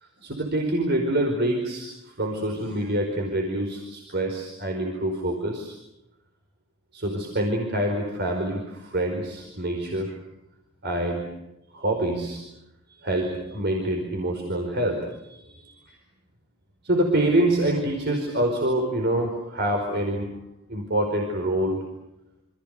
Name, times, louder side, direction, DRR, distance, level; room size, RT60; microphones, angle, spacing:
voice 1, 0.2-5.7 6.9-10.1 10.8-11.4 11.7-12.4 13.0-15.7 16.8-20.3 20.7-21.9, right 1 dB, 50° right, 2 dB, 4.8 m, -26 dB
28.5 x 27.5 x 6.7 m, 0.89 s
head